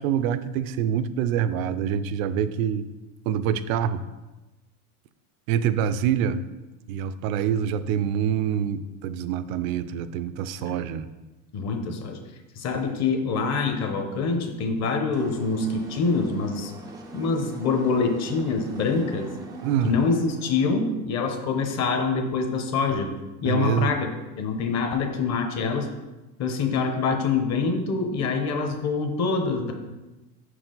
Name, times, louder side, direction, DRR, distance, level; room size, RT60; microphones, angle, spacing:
voice 1, 0.0-2.9 3.3-4.0 5.5-6.4 6.9-11.1 12.7-12.9 19.6-19.9 23.5-23.9, right 9 dB, 65° right, 13 dB, 0.5 m, -25 dB
voice 2, 11.5-12.2 12.6-16.7 17.1-19.3 19.8-23.1 23.4-24.1 24.4-25.9 26.4-29.7, left 4 dB, 35° left, 4 dB, 1.0 m, -25 dB
sound 1, 15.1-20.7, right 2 dB, 10° right, 0.3 m, -41 dB
6.0 x 4.8 x 3.9 m, 1.1 s
supercardioid pair, 130°, 44 cm